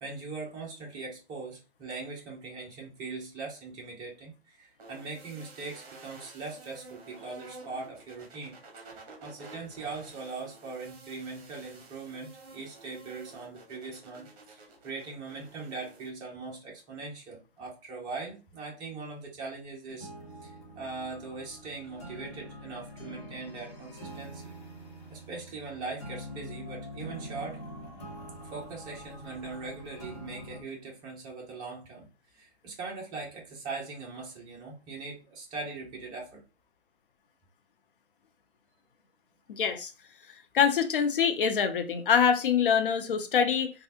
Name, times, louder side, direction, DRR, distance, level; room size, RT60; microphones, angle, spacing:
voice 1, 0.0-8.5 9.2-20.1 20.4-24.5 25.1-27.6 28.5-32.1 32.3-36.4, right 4 dB, 10° right, 0.6 m, -41 dB
sound 1, 4.8-16.1, right 3 dB, 35° right, 1.1 m, -51 dB
sound 2, 19.9-30.6, equal, 25° left, 0.9 m, -45 dB
voice 2, 39.5-39.9 40.5-43.7, left 7 dB, 50° left, 0.6 m, -25 dB
3.2 x 2.3 x 2.8 m
hypercardioid pair, 140°, 33 cm